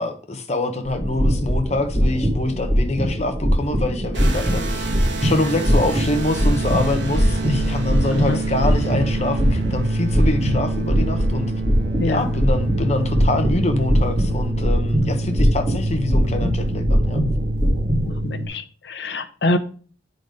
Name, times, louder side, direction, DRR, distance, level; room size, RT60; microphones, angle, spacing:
voice 1, 0.0-4.9 5.2-11.5 12.0-17.2, left 2 dB, 35° left, 1.0 m, -25 dB
sound 1, 0.8-18.2, equal, 10° right, 2.9 m, -21 dB
sound 2, 4.1-18.5, right 2 dB, 85° right, 1.4 m, -27 dB
voice 2, 12.0-12.3 18.0-19.6, left 2 dB, 70° left, 0.7 m, -25 dB
8.5 x 4.0 x 5.1 m
head